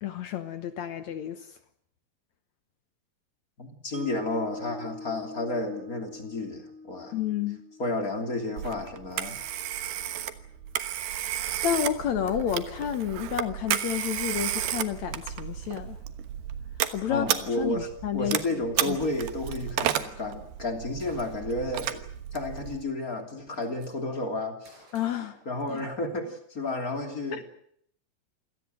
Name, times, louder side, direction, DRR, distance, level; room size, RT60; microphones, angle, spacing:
voice 1, 0.0-1.5 7.1-7.6 11.6-16.0 16.9-17.3 17.6-18.4 18.9-19.0 24.9-25.4 25.7-25.8 27.3-27.4, left 10 dB, 75° left, 10 dB, 1.7 m, -30 dB
voice 2, 3.6-7.1 7.8-9.4 17.1-17.9 18.1-22.0 22.3-24.7 25.4-27.4, left 2 dB, 25° left, 4 dB, 2.8 m, -32 dB
Mallet percussion, 3.9-10.1, left 2 dB, 25° right, 1.5 m, -45 dB
Telephone, 8.6-22.8, right 11 dB, 75° right, 3.1 m, -33 dB
Gunshot gunfire, 21.0-21.6 22.8-22.9 23.2-23.9 24.7-26.1, right 2 dB, 90° right, 7.7 m, -56 dB
27.5 x 18.5 x 7.8 m, 0.67 s
omnidirectional pair, 4.8 m